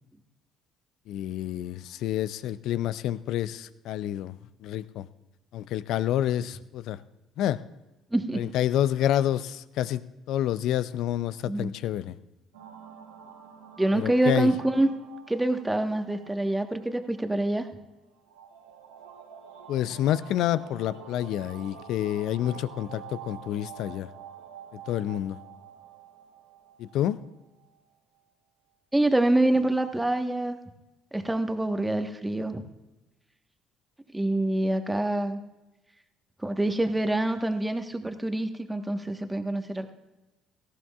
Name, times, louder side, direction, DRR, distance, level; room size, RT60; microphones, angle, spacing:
voice 1, 1.1-5.1 5.5-7.0 7.4-7.6 8.4-10.0 10.3-12.1 13.9-14.5 19.7-24.1 24.9-25.4 26.8-27.2, left 12 dB, 65° left, 16 dB, 0.5 m, -28 dB
voice 2, 8.1-8.4 11.4-11.7 13.8-14.9 15.3-17.7 28.9-30.6 31.1-32.7 34.1-35.4 36.4-39.9, right 1 dB, 10° right, 6 dB, 1.3 m, -26 dB
sound 1, 12.5-27.8, right 8 dB, 85° right, 2.0 m, -48 dB
18.0 x 14.5 x 2.4 m, 1.0 s
hypercardioid pair, 55°, 0 cm